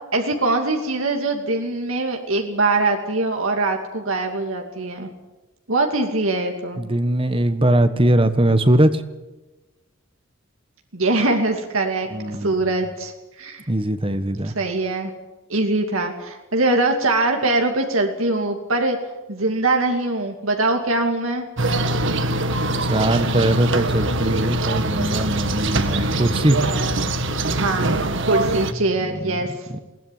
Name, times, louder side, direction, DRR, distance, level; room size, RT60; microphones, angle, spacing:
voice 1, 0.1-5.1 5.7-6.8 10.9-13.1 13.4-13.6 14.6-15.1 15.5-19.0 19.3-21.5 25.9-26.4 27.5-27.9 28.3-29.7, right 2 dB, 90° right, 3 dB, 2.6 m, -22 dB
voice 2, 6.8-9.0 12.1-12.6 13.7-14.5 22.8-26.6 29.0-29.4 29.7-29.8, right 1 dB, 25° right, 11 dB, 1.3 m, -20 dB
sound 1, 21.6-28.7, right 2 dB, 65° right, 1.7 m, -23 dB
21.5 x 17.5 x 9.5 m, 1.1 s
head